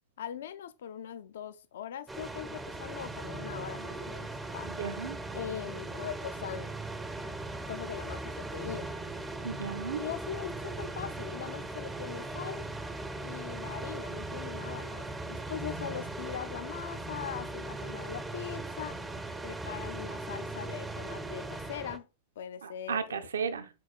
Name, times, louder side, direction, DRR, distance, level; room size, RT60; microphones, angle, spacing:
voice 1, 0.2-4.7 5.3-6.7 7.7-9.0 9.9-12.7 13.2-19.0 19.4-22.1 22.4-23.3, left 9 dB, 60° left, 0.3 m, -41 dB
sound 1, 2.1-22.0, right 2 dB, 10° right, 0.4 m, -39 dB
voice 2, 4.8-5.2 9.4-10.0 22.6-23.7, right 6 dB, 70° right, 0.5 m, -34 dB
4.5 x 4.0 x 2.3 m
figure-of-eight pair, 90°, 0 cm